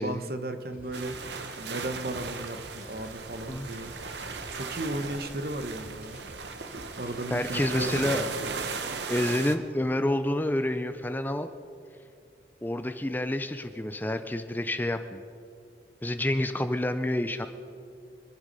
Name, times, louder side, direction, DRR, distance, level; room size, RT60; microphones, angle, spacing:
voice 1, 0.0-3.9 4.5-6.2 7.0-8.3, right 1 dB, 55° right, 8 dB, 1.1 m, -35 dB
sound 1, 0.7-8.1, equal, 10° right, 5.3 m, -51 dB
sound 2, 0.9-9.6, right 4 dB, 75° right, 1.0 m, -37 dB
voice 2, 7.3-8.3 9.1-11.5 12.6-15.2 16.0-17.5, left 1 dB, 10° left, 9 dB, 0.5 m, -28 dB
25.5 x 10.5 x 5.4 m, 2.5 s
head